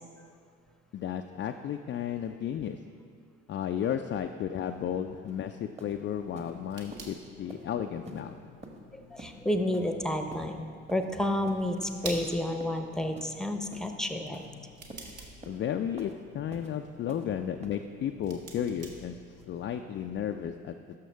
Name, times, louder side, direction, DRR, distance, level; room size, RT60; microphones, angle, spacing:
voice 1, 0.9-2.8 3.5-8.5 15.5-19.2 19.5-20.8, left 9 dB, 35° left, 6 dB, 0.4 m, -33 dB
sound 1, 5.3-5.4 5.8-5.9 6.3-6.5 6.9-7.0 7.5-7.6 8.0-8.2 8.6-8.8 9.2-9.3 9.7-9.9 10.3-10.5 10.9-11.1 11.5-11.6 12.0-12.2 12.6-12.8 13.1-13.3 13.7-13.9 14.3-14.5 14.9-15.0 15.4-15.6 16.0-16.1 16.5-16.7 17.1-17.3 17.6-17.7, right 2 dB, 20° right, 1.2 m, -46 dB
sound 2, 6.1-19.7, right 2 dB, 55° right, 1.5 m, -49 dB
voice 2, 9.1-14.4, left 1 dB, ahead, 6 dB, 0.8 m, -30 dB
12.0 x 6.3 x 3.4 m, 2.2 s
hypercardioid pair, 50°, 37 cm